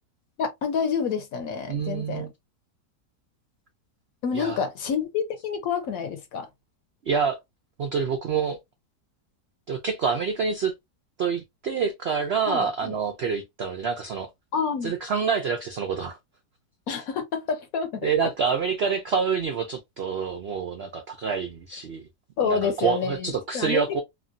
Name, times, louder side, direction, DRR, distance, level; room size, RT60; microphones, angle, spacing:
voice 1, 0.4-2.3 4.2-6.5 12.5-12.9 14.5-14.9 16.9-18.1 22.4-24.0, left 6 dB, 65° left, 1.0 m, -28 dB
voice 2, 1.7-2.3 4.3-4.6 7.0-7.4 7.8-8.6 9.7-10.7 11.2-14.3 14.8-16.2 18.0-22.1 22.4-24.0, right 6 dB, 80° right, 0.5 m, -27 dB
3.1 x 2.5 x 2.5 m
omnidirectional pair, 1.8 m